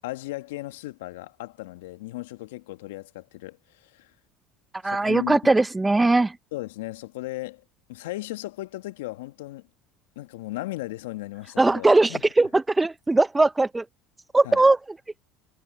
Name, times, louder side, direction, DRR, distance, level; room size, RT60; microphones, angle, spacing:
voice 1, 0.0-4.1 4.8-5.4 6.5-7.6 7.9-9.6 10.1-12.2 14.4-14.6, left 18 dB, 75° left, 1.4 m, -36 dB
voice 2, 4.8-6.4 11.6-13.8 14.3-14.8, right 2 dB, 15° right, 0.7 m, -20 dB
hypercardioid pair, 70°, 0 cm